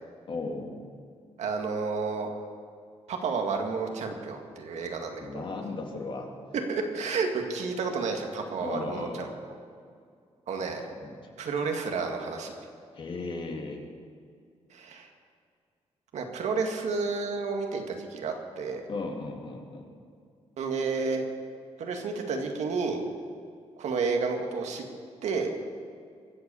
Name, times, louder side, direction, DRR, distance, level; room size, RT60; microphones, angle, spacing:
voice 1, 0.3-0.7 5.2-6.3 8.6-9.3 10.6-11.3 12.9-13.8 18.9-19.9, left 3 dB, 45° left, 3 dB, 2.1 m, -36 dB
voice 2, 1.4-2.3 3.1-5.4 6.7-9.5 10.5-10.9 11.4-12.5 14.7-15.1 16.1-18.8 20.6-21.2 21.8-23.0 23.8-24.8 25.2-25.5, right 4 dB, 75° right, 3 dB, 2.0 m, -31 dB
23.5 x 8.3 x 7.0 m, 2.2 s
wide cardioid pair, 170°, 12 cm